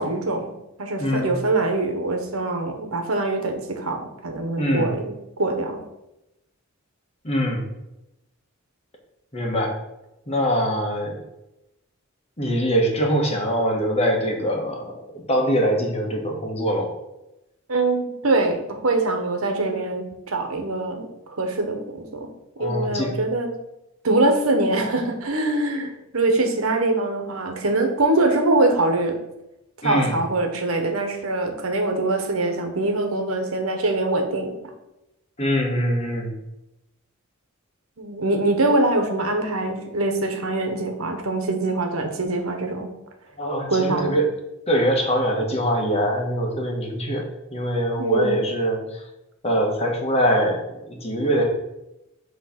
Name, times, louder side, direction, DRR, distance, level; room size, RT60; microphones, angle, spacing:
voice 1, 0.0-5.8 17.7-22.3 22.6-23.5 24.0-29.2 29.8-34.5 38.0-42.9 43.7-44.2 48.0-48.4, right 2 dB, 85° right, 4 dB, 1.2 m, -23 dB
voice 2, 1.0-1.3 4.6-4.9 7.2-7.6 9.3-9.8 10.3-11.2 12.4-16.9 22.6-23.2 29.8-30.2 35.4-36.3 43.4-44.3 44.7-49.0 49.4-51.5, equal, 30° left, 1 dB, 1.4 m, -23 dB
7.7 x 3.3 x 5.9 m, 0.91 s
head